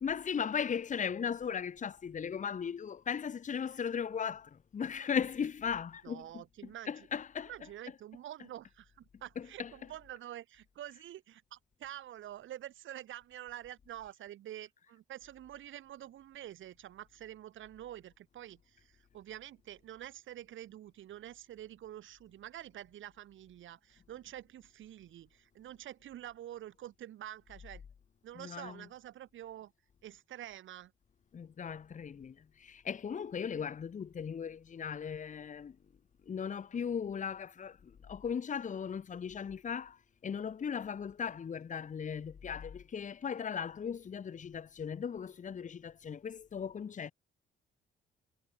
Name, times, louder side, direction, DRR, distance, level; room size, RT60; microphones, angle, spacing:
voice 1, 0.0-6.4 6.9-7.5 9.4-9.7 28.4-28.8 31.3-35.8 36.3-40.0 40.2-47.1, left 7 dB, 40° left, 1.1 m, -37 dB
voice 2, 6.0-7.1 7.4-27.8 28.2-29.7 30.0-30.9, right 12 dB, 75° right, 8.0 m, -47 dB
cardioid pair, 90°, 20 cm